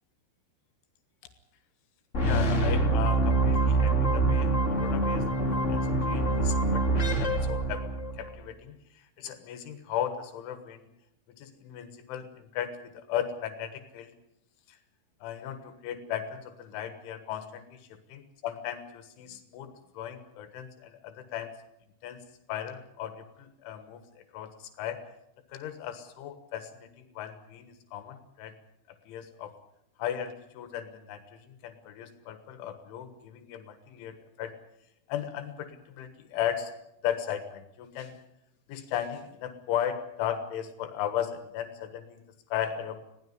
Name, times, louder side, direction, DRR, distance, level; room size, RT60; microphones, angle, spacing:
sound 1, 2.1-8.3, right 2 dB, 25° left, 1.7 m, -25 dB
voice 1, 2.2-7.8 8.2-8.8 9.2-10.9 11.4-14.1 14.7-14.8 15.2-21.5 22.0-22.2 22.5-24.0 24.3-25.0 25.5-28.5 29.1-29.5 30.0-34.6 35.1-36.7 37.0-38.1 38.7-42.2 42.5-43.0, left 10 dB, 80° left, 9 dB, 3.8 m, -36 dB
21.0 x 16.0 x 9.5 m, 0.83 s
omnidirectional pair, 5.5 m